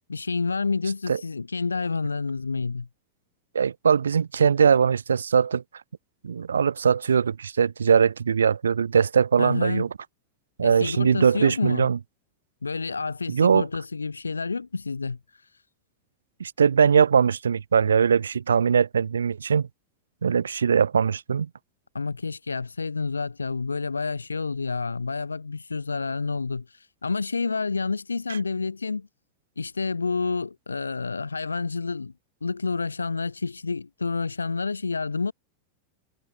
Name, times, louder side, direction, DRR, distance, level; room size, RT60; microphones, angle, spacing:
voice 1, 0.1-2.9 9.4-9.9 10.6-11.9 12.6-15.2 21.9-29.1 29.6-32.1 32.4-35.3, left 4 dB, 75° left, 2.1 m, -29 dB
voice 2, 3.5-5.6 6.2-9.9 10.6-12.0 13.3-13.7 16.4-19.7 20.2-21.5, right 6 dB, 70° right, 1.4 m, -21 dB
figure-of-eight pair, 90°, 0 cm